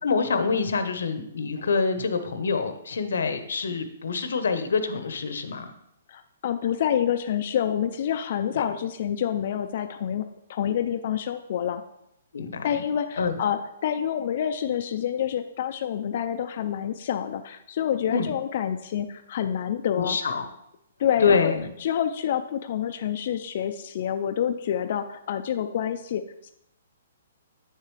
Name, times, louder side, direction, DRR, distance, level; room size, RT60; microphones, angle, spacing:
voice 1, 0.0-5.7 8.5-8.7 12.3-12.8 13.2-13.4 18.1-18.3 20.0-20.4 21.2-21.7, left 5 dB, 85° left, 9 dB, 0.9 m, -26 dB
voice 2, 6.1-11.8 12.6-20.2 21.0-21.5 21.8-26.5, left 9 dB, 40° left, 7 dB, 0.3 m, -27 dB
8.2 x 6.6 x 3.2 m, 0.80 s
hypercardioid pair, 175°, 0 cm